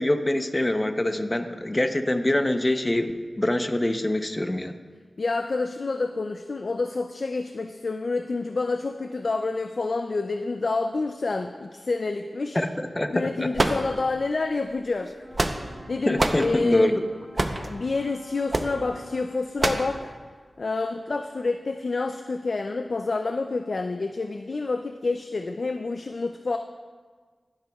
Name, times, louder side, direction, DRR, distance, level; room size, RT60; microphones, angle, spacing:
voice 1, 0.0-4.7 12.5-13.5 16.1-16.9, left 1 dB, 25° left, 7 dB, 0.7 m, -24 dB
voice 2, 5.2-12.6 13.1-15.1 15.9-17.0 17.5-20.1 20.6-26.6, left 3 dB, 65° left, 6 dB, 0.4 m, -28 dB
sound 1, 13.5-14.3 15.1-15.8 16.2-16.5 17.4-17.7 18.5-18.7 19.6-19.9, right 2 dB, 40° right, 0.7 m, -25 dB
Brass instrument, 15.2-19.6, right 2 dB, 5° right, 1.4 m, -50 dB
12.5 x 12.0 x 2.3 m, 1.5 s
wide cardioid pair, 65°, 0 cm